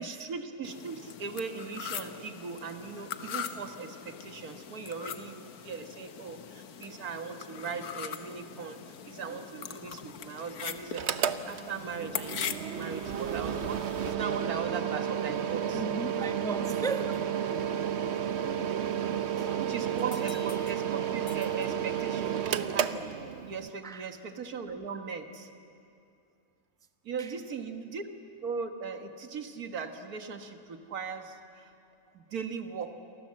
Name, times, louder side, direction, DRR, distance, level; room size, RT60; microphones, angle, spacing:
voice 1, 0.0-8.8 9.1-11.1 11.5-15.8 19.6-23.2 23.5-25.5 27.0-31.7 32.1-33.0, right 5 dB, 85° right, 7 dB, 1.9 m, -39 dB
sound 1, 0.6-14.1, left 8 dB, 90° left, 1.5 m, -41 dB
Mechanical fan, 10.9-23.7, right 9 dB, 55° right, 1.0 m, -32 dB
voice 2, 15.7-17.3 18.6-18.7 19.0-19.7 23.8-24.1 27.2-27.3, right 2 dB, 5° left, 8 dB, 0.7 m, -38 dB
sound 2, 20.0-22.5, left 3 dB, 35° left, 1.5 m, -51 dB
28.5 x 24.0 x 7.6 m, 2.5 s
omnidirectional pair, 1.5 m